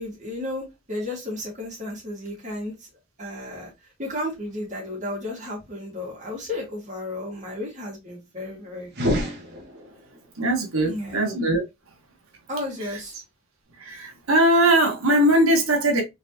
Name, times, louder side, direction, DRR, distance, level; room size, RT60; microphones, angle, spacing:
voice 1, 0.0-2.7 3.2-9.1 10.8-11.2 12.5-13.2, left 1 dB, 35° right, 1.9 m, -33 dB
sound 1, 8.9-10.2, equal, 50° right, 1.1 m, -27 dB
voice 2, 10.4-11.6 13.8-16.0, right 1 dB, 75° right, 1.2 m, -20 dB
3.9 x 3.4 x 2.7 m
head